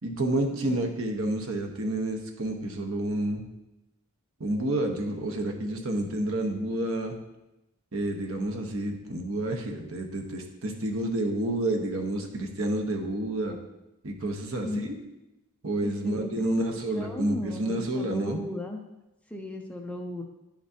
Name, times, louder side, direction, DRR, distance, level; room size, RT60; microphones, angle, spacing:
voice 1, 0.0-3.4 4.4-7.1 7.9-13.6 14.0-14.9 15.6-18.4, right 1 dB, 65° right, 3 dB, 1.1 m, -29 dB
voice 2, 15.8-16.5 17.0-18.8 19.3-20.2, left 1 dB, 5° left, 3 dB, 0.5 m, -36 dB
10.0 x 6.0 x 2.8 m, 0.95 s
head